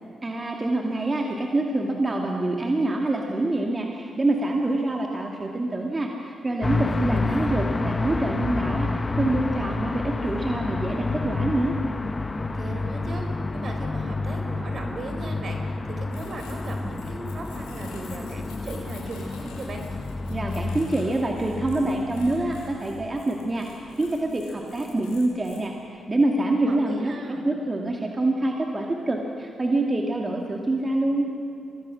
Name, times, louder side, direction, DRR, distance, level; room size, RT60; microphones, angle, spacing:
voice 1, 0.2-11.7 20.3-31.3, right 2 dB, 30° right, 1 dB, 2.4 m, -26 dB
sound 1, 6.6-23.2, left 3 dB, 30° left, 1.0 m, -29 dB
voice 2, 6.7-7.7 12.4-15.6 15.9-19.8 26.5-27.4, right 2 dB, 55° right, 4 dB, 4.2 m, -37 dB
sound 2, 16.1-25.6, left 4 dB, 90° left, 4.8 m, -49 dB
25.5 x 19.5 x 6.4 m, 2.6 s
supercardioid pair, 45°, 0 cm